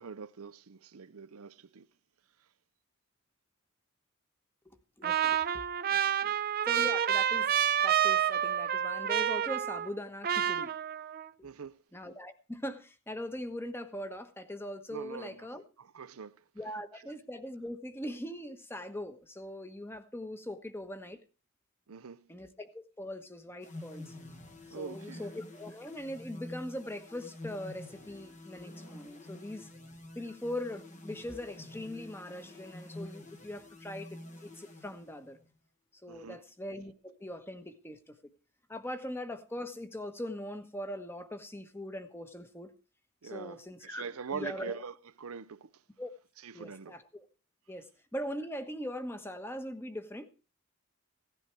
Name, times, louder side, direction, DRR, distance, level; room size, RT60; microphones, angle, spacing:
voice 1, 0.0-1.9 6.2-6.4 11.4-11.8 14.9-15.5 15.8-16.4 21.9-22.3 24.7-25.3 36.1-36.4 43.2-45.7 46.4-47.0, right 5 dB, 85° right, 0.6 m, -43 dB
voice 2, 4.6-5.6 5.9-6.0 6.6-7.5 7.8-10.7 11.4-11.5 11.9-15.6 16.5-21.2 22.3-24.1 24.7-29.7 30.1-35.4 36.0-38.1 38.7-42.7 43.2-44.0 44.3-44.8 46.0-46.1 46.5-47.3 47.7-50.3, left 1 dB, 10° left, 1.2 m, -41 dB
Trumpet, 5.0-10.0 10.2-11.3, right 9 dB, 45° right, 0.6 m, -29 dB
sound 1, 23.6-35.5, left 1 dB, 35° left, 1.2 m, -48 dB
17.0 x 11.0 x 4.6 m
head